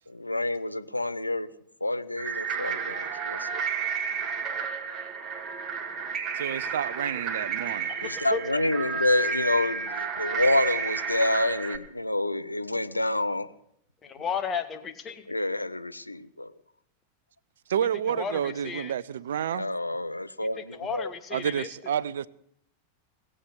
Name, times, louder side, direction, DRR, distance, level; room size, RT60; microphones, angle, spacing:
voice 1, 0.1-1.5 1.8-3.6 8.0-13.5 15.3-16.5 19.5-21.1, left 1 dB, 85° left, 0.7 m, -28 dB
sound 1, 2.2-11.8, right 6 dB, 30° right, 1.7 m, -31 dB
voice 2, 6.1-8.0 17.7-19.7 21.3-22.3, right 9 dB, 60° right, 0.5 m, -30 dB
voice 3, 7.9-8.6 14.0-15.3 18.1-18.9 20.6-21.7, left 6 dB, 25° left, 1.5 m, -34 dB
19.0 x 7.8 x 8.3 m
figure-of-eight pair, 90°, 0 cm